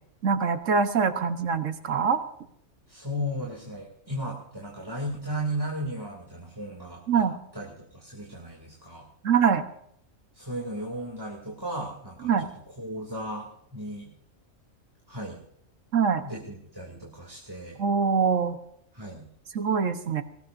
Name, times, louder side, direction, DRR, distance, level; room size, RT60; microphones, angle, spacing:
voice 1, 0.2-2.2 7.1-7.4 9.2-9.6 12.2-12.5 15.9-16.2 17.8-18.6 19.5-20.2, right 6 dB, 75° right, 9 dB, 1.5 m, -24 dB
voice 2, 2.9-7.2 7.5-9.1 10.3-12.5 12.8-14.1 15.1-15.4 16.2-17.8 18.9-19.3, equal, 15° right, -3 dB, 2.7 m, -35 dB
21.5 x 18.0 x 2.6 m, 0.70 s
omnidirectional pair, 1.4 m